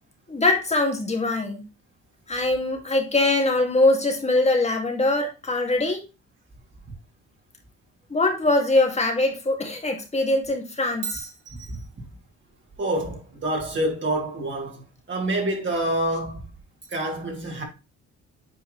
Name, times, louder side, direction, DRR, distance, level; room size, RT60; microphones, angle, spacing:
voice 1, 0.3-1.6 2.3-6.0 8.1-11.3, left 2 dB, 20° left, 2.3 m, -22 dB
voice 2, 11.0-11.8 12.8-16.5 16.9-17.6, right 1 dB, 40° right, 3.0 m, -27 dB
8.7 x 4.6 x 3.2 m
cardioid pair, 90°, 30 cm